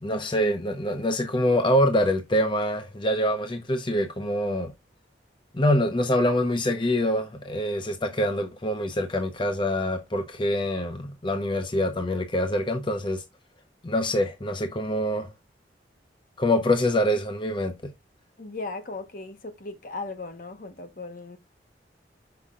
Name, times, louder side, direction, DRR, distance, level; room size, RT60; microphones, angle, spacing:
voice 1, 0.0-4.7 5.5-13.2 13.8-15.3 16.4-17.9, left 1 dB, 25° left, 0.7 m, -25 dB
voice 2, 18.4-21.4, left 3 dB, 50° left, 1.0 m, -37 dB
5.8 x 5.5 x 3.7 m
head